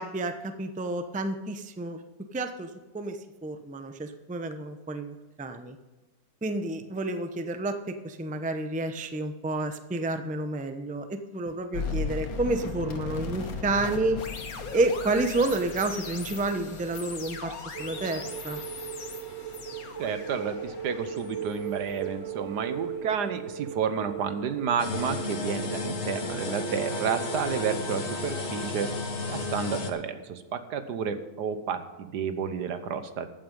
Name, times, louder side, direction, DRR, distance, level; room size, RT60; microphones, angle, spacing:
voice 1, 0.0-2.0 2.3-5.8 6.4-18.6, right 2 dB, 10° right, 8 dB, 0.5 m, -30 dB
sound 1, 11.7-22.8, left 4 dB, 60° left, 1.7 m, -38 dB
sound 2, 17.7-31.2 31.5-31.7, right 8 dB, 60° right, 0.8 m, -40 dB
voice 2, 20.0-28.9 29.3-33.3, right 7 dB, 80° right, 10 dB, 1.6 m, -31 dB
sound 3, 24.8-29.9, left 3 dB, 45° left, 1.5 m, -33 dB
14.5 x 9.2 x 5.4 m, 1.2 s
omnidirectional pair, 1.7 m